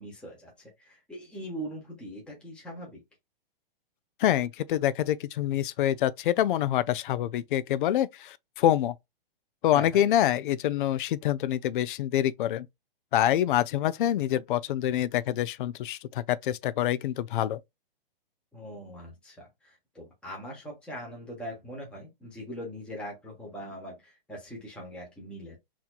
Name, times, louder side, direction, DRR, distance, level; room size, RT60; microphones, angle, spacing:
voice 1, 0.0-3.0 9.7-10.0 18.5-25.6, equal, 5° left, 1.0 m, -41 dB
voice 2, 4.2-8.9 9.6-12.7 13.1-17.6, left 12 dB, 60° left, 0.4 m, -26 dB
4.2 x 2.9 x 2.3 m
hypercardioid pair, 150°, 29 cm